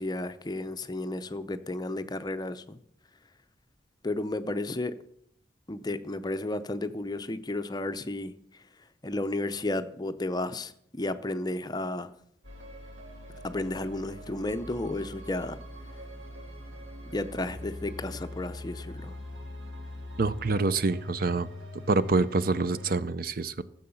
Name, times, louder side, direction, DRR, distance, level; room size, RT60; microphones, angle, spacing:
voice 1, 0.0-2.8 4.0-4.9 5.7-8.3 9.0-12.1 13.4-15.6 17.1-19.2, left 2 dB, 20° left, 11 dB, 0.6 m, -33 dB
sound 1, 12.4-23.0, left 1 dB, 90° right, 3.2 m, -43 dB
voice 2, 20.2-21.5 21.9-23.6, right 3 dB, 50° right, 15 dB, 0.6 m, -26 dB
14.0 x 7.7 x 7.0 m, 0.71 s
head